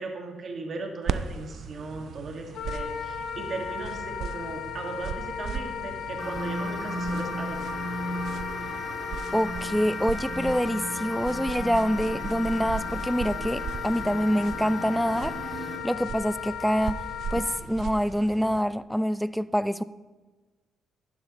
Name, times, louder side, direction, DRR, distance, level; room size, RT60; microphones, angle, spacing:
voice 1, 0.0-7.7, right 3 dB, 50° right, 1.8 m, -37 dB
sound 1, 1.1-18.6, right 7 dB, 65° right, 0.5 m, -38 dB
Wind instrument woodwind instrument, 2.5-17.6, left 8 dB, 85° left, 0.8 m, -36 dB
sound 2, 6.2-15.8, right 1 dB, 25° right, 1.9 m, -37 dB
voice 2, 9.3-15.4 15.8-17.0 17.3-19.8, equal, ahead, 0.3 m, -26 dB
11.0 x 10.5 x 3.0 m
cardioid pair, 90°, 0 cm